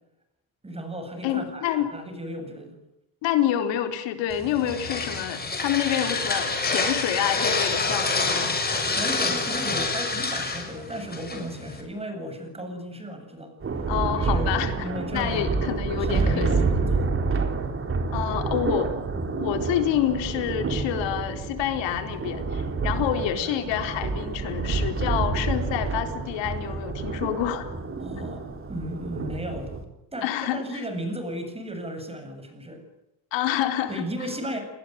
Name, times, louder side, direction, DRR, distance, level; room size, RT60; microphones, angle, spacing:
voice 1, 0.6-2.8 8.7-13.5 14.2-15.5 15.9-17.5 23.0-23.1 24.9-25.1 27.0-27.2 28.0-28.4 28.7-29.7 30.1-32.8 33.9-34.6, equal, 15° right, 7 dB, 8.0 m, -35 dB
voice 2, 1.2-1.9 3.2-8.5 13.9-14.7 15.1-16.5 18.1-18.9 19.4-27.7 30.2-30.6 33.3-34.0, left 10 dB, 80° left, 6 dB, 4.4 m, -27 dB
sound 1, 4.3-11.8, left 3 dB, 20° left, 6.7 m, -27 dB
Thunder, 13.6-29.8, right 4 dB, 30° right, 4.3 m, -28 dB
29.5 x 20.5 x 9.7 m, 0.86 s
cardioid pair, 125°, 44 cm